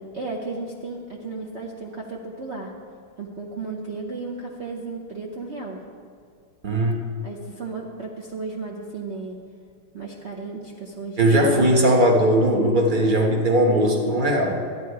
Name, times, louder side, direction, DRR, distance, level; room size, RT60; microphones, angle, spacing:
voice 1, 0.0-2.7 3.2-5.8 7.2-9.4 9.9-11.8, right 3 dB, 50° right, -2 dB, 0.8 m, -34 dB
voice 2, 6.6-7.0 11.2-14.6, right 1 dB, 30° right, 1 dB, 1.1 m, -19 dB
12.5 x 9.7 x 4.7 m, 2.2 s
omnidirectional pair, 2.3 m